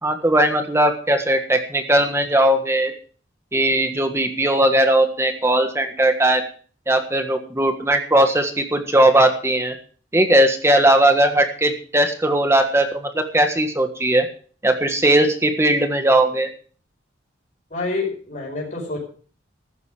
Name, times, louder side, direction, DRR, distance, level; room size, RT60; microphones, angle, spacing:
voice 1, 0.0-2.9 3.5-6.4 6.9-9.7 10.1-14.3 14.6-16.5, right 1 dB, 15° right, 5 dB, 1.6 m, -18 dB
voice 2, 17.7-19.0, left 3 dB, 40° left, -3 dB, 5.2 m, -27 dB
14.5 x 12.5 x 5.0 m, 0.43 s
head